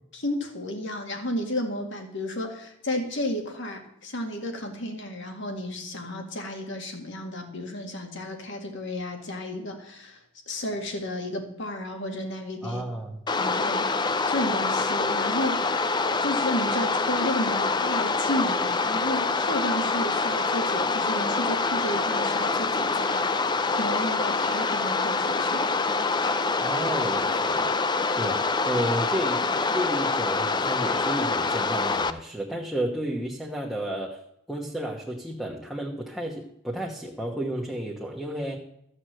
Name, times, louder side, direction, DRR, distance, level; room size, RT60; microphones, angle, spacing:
voice 1, 0.1-10.2 10.5-12.8 13.3-13.9 14.3-15.9 16.2-25.7, left 1 dB, 60° left, 3 dB, 2.2 m, -32 dB
voice 2, 12.6-13.2 26.6-27.8 28.2-29.5 29.7-34.2 34.5-38.6, right 1 dB, ahead, -1 dB, 1.2 m, -32 dB
sound 1, 13.3-32.1, left 3 dB, 20° left, 0.5 m, -25 dB
14.0 x 6.5 x 7.6 m, 0.77 s
head